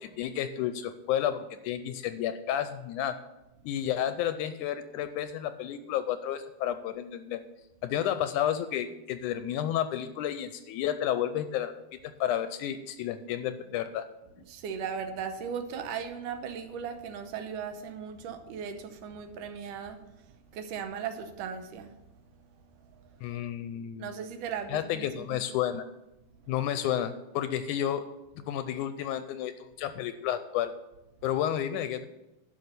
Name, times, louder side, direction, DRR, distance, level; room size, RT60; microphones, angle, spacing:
voice 1, 0.0-3.2 3.6-7.4 7.8-11.8 12.2-14.1 23.2-24.1 24.7-25.9 26.5-28.0 28.4-29.5 29.8-30.7 31.2-32.1, left 10 dB, 80° left, 11 dB, 1.9 m, -31 dB
voice 2, 14.5-20.0 20.5-21.9 24.0-25.4, right 7 dB, 75° right, 7 dB, 2.4 m, -37 dB
11.0 x 6.0 x 6.9 m, 0.95 s
omnidirectional pair, 3.8 m